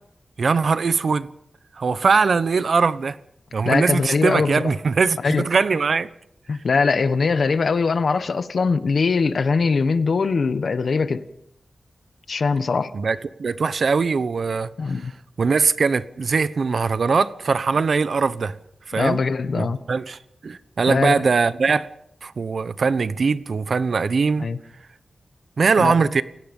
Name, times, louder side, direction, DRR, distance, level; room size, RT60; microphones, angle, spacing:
voice 1, 0.4-1.3 1.8-3.2 3.5-6.1 12.9-14.7 15.4-18.5 18.9-19.2 19.6-21.9 22.2-24.5 25.6-26.2, right 4 dB, 65° right, 1.0 m, -21 dB
voice 2, 3.6-4.7 5.2-5.5 6.5-11.2 12.3-12.9 14.8-15.1 18.9-19.8 20.9-21.2 24.4-24.6 25.8-25.9, left 4 dB, 65° left, 1.3 m, -21 dB
29.5 x 17.5 x 5.5 m
wide cardioid pair, 120°, 0 cm